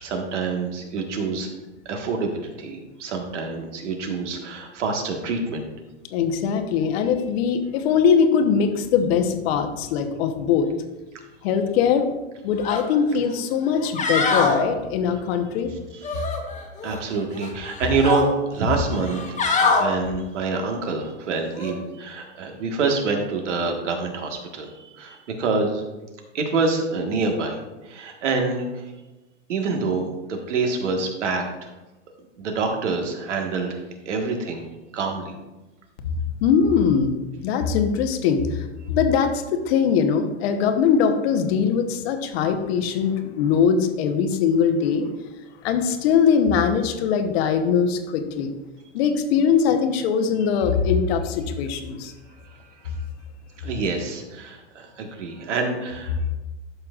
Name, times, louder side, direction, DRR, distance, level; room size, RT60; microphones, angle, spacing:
voice 1, 0.0-1.5 1.8-5.6 16.8-18.3 18.5-25.8 26.3-27.6 27.9-28.7 29.5-31.7 32.4-33.8 34.0-34.6 34.9-35.3 53.6-56.1, right 4 dB, 80° right, 3 dB, 1.6 m, -26 dB
voice 2, 6.1-10.7 11.4-12.1 12.4-15.7 36.4-37.2 37.4-38.4 38.9-45.1 45.6-48.5 48.9-52.1, left 6 dB, 55° left, 6 dB, 1.1 m, -21 dB
sound 1, 12.6-12.8 13.2-13.3 13.8-14.6 16.0-17.0 17.3-18.3 19.0-19.8 21.5-21.7, left 4 dB, 20° left, 1.2 m, -23 dB
12.0 x 5.8 x 2.4 m, 1.1 s
hypercardioid pair, 110°, 36 cm